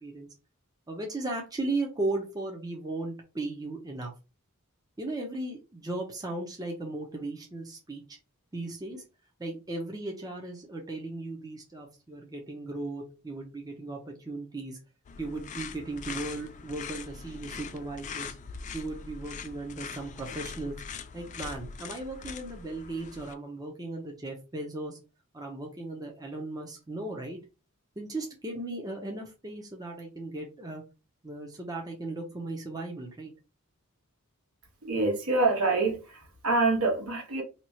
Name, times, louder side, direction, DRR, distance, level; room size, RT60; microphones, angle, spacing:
voice 1, 0.9-4.1 5.0-8.2 8.5-9.0 9.4-14.8 15.2-18.3 18.7-20.7 21.1-25.0 25.3-27.4 28.0-30.8 31.2-33.3, right 2 dB, 15° right, 0.7 m, -36 dB
sound 1, 15.0-23.3, left 6 dB, 35° left, 0.3 m, -42 dB
voice 2, 34.8-37.4, right 3 dB, 65° right, 1.3 m, -26 dB
2.9 x 2.3 x 4.2 m
head